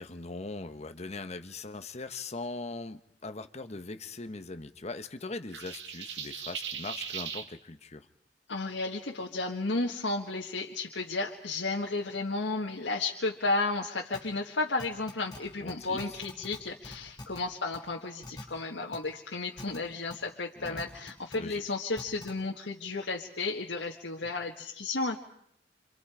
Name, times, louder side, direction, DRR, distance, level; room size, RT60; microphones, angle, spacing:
voice 1, 0.0-8.1 15.6-16.2 20.6-20.8 21.3-21.6, left 3 dB, 40° left, 10 dB, 1.2 m, -40 dB
sound 1, 5.5-7.5, right 7 dB, 75° right, 1.9 m, -38 dB
voice 2, 8.5-25.2, left 3 dB, 85° left, -1 dB, 1.7 m, -33 dB
sound 2, 14.1-14.2 14.8-15.4 15.7-15.8 16.0-16.6 16.8-17.4 17.7-17.8 18.2-18.4 18.9-19.0 19.6-19.8 20.1-20.2 20.6-21.4 22.0-22.3, left 1 dB, 20° left, 6.9 m, -42 dB
28.5 x 27.5 x 5.0 m, 0.70 s
head